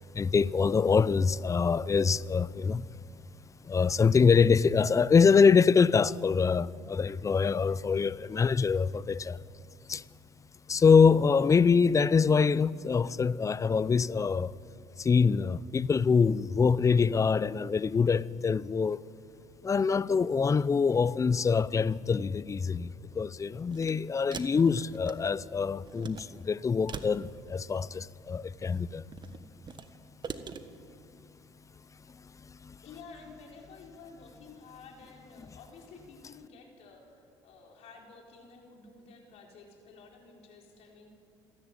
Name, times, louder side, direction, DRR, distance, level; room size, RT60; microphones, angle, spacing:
voice 1, 0.1-2.9 3.6-9.4 9.9-10.0 10.7-14.5 15.0-19.0 19.6-29.0 32.6-32.7, left 5 dB, 25° left, 0.6 m, -25 dB
sound 1, 23.7-23.9 24.3-25.5 25.8-26.2 26.9-28.1 28.6-29.9 30.2-30.6, right 6 dB, 40° right, 1.4 m, -42 dB
voice 2, 32.8-41.1, left 4 dB, 65° left, 4.6 m, -51 dB
27.5 x 11.0 x 9.1 m
supercardioid pair, 70°, 12 cm